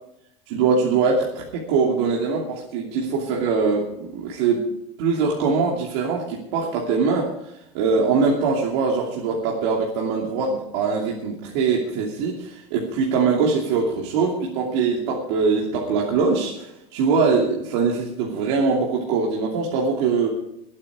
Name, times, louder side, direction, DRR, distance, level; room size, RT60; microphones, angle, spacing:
voice 1, 0.5-4.6 5.0-7.3 7.7-20.3, right 4 dB, 65° right, -2 dB, 2.8 m, -22 dB
22.5 x 8.9 x 4.9 m, 0.78 s
cardioid pair, 170°, 15 cm